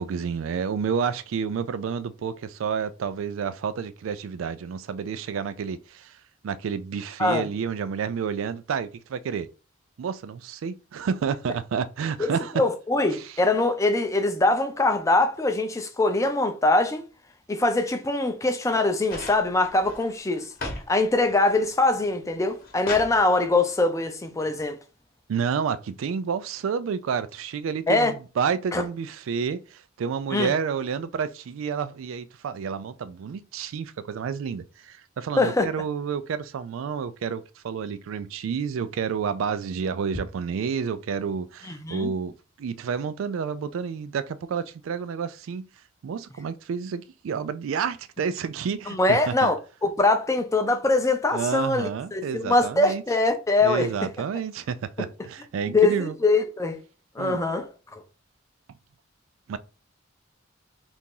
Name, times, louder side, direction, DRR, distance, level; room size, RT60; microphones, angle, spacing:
voice 1, 0.0-6.2 6.4-9.5 10.0-12.5 13.1-13.3 25.3-42.3 42.6-45.7 46.0-49.5 51.3-53.0 53.6-56.2 57.2-57.4 59.5-59.6, right 6 dB, 75° right, 0.3 m, -30 dB
voice 2, 12.2-17.1 17.5-20.5 20.9-24.8 27.9-28.1 28.7-28.8 30.3-30.5 35.4-35.7 41.7-42.1 48.9-49.5 49.8-53.9 55.0-55.1 55.7-56.8 57.2-57.7, left 2 dB, 15° left, 0.4 m, -23 dB
sound 1, 19.1-20.9 21.2-21.8 22.3-23.2 24.4-24.5, left 2 dB, 45° left, 0.9 m, -37 dB
2.8 x 2.5 x 3.7 m
head